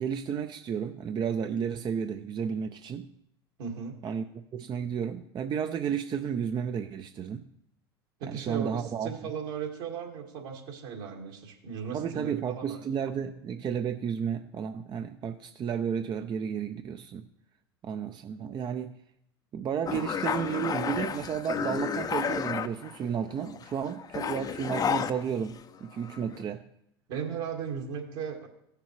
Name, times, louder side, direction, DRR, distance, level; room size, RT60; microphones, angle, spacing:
voice 1, 0.0-3.1 4.0-7.4 8.3-9.1 11.9-17.2 17.8-19.0 19.5-26.6, right 7 dB, 35° right, 7 dB, 0.6 m, -32 dB
voice 2, 3.6-4.0 8.2-12.8 27.1-28.5, right 7 dB, 65° right, 1 dB, 2.1 m, -36 dB
sound 1, 19.9-23.1 23.4-25.8 26.0-26.4, left 7 dB, 30° left, 0.6 m, -32 dB
16.5 x 6.7 x 3.1 m, 0.77 s
hypercardioid pair, 75°, 13 cm